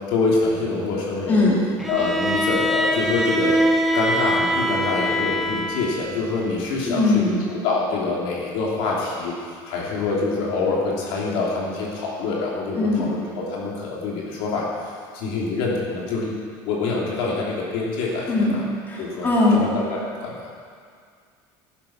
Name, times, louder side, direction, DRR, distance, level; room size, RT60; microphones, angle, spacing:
voice 1, 0.1-1.4 1.9-3.5 3.9-9.3 9.7-18.6 19.0-19.3 19.5-20.5, left 3 dB, 75° left, -4 dB, 3.1 m, -26 dB
voice 2, 1.3-1.6 6.8-7.4 12.8-13.1 18.3-18.5 18.9-19.6, left 2 dB, 20° left, -6 dB, 3.0 m, -20 dB
Bowed string instrument, 1.8-6.1, equal, ahead, 0.8 m, -23 dB
11.5 x 10.5 x 5.9 m, 2.1 s
cardioid pair, 155°, 10 cm